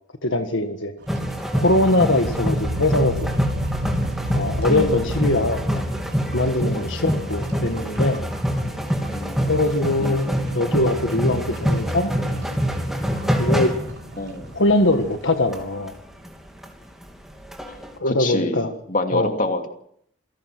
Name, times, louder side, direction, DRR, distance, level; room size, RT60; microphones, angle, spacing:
voice 1, 0.2-0.9 1.5-3.3 4.3-5.8 6.3-8.2 9.5-10.3 10.5-12.1 13.4-13.7 14.5-15.9 18.0-18.7 19.1-19.3, left 2 dB, 75° left, 6 dB, 1.7 m, -21 dB
sound 1, 1.0-16.9, right 1 dB, 60° right, 3.6 m, -41 dB
sound 2, 1.1-15.3 15.5-15.6 15.9-16.0 16.3-16.7 17.0-17.1 17.3-17.9, equal, ahead, 3.0 m, -25 dB
sound 3, 2.2-6.9, right 1 dB, 85° right, 2.5 m, -30 dB
voice 2, 4.7-5.0 9.1-9.4 10.0-10.3 14.2-14.5 17.7-17.8 18.0-19.7, left 1 dB, 40° left, 5 dB, 2.8 m, -27 dB
27.5 x 18.0 x 6.2 m, 0.68 s
head